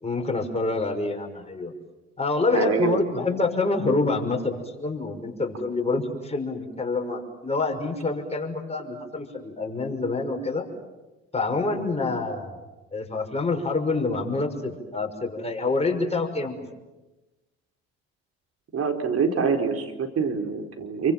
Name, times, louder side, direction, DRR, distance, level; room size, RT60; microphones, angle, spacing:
voice 1, 0.0-1.7 2.2-10.7 11.3-12.6 12.9-16.6, left 3 dB, 20° left, 2 dB, 5.9 m, -27 dB
voice 2, 2.5-3.0 18.7-21.1, right 5 dB, 50° right, 5 dB, 4.6 m, -25 dB
28.5 x 25.0 x 7.6 m, 1.1 s
hypercardioid pair, 60°, 31 cm